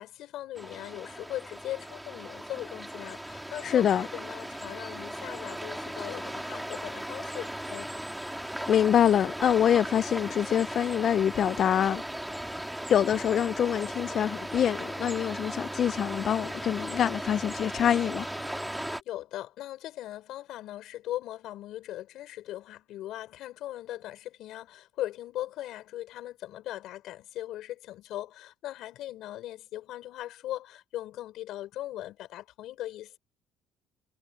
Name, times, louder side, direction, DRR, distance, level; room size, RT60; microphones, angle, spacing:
voice 1, 0.0-7.9 19.1-33.2, left 14 dB, 70° left, 4.0 m, -39 dB
sound 1, 0.6-19.0, right 1 dB, 5° right, 3.1 m, -37 dB
voice 2, 3.6-4.1 8.7-12.0 12.9-18.3, left 9 dB, 55° left, 0.4 m, -25 dB
supercardioid pair, 85°, 0 cm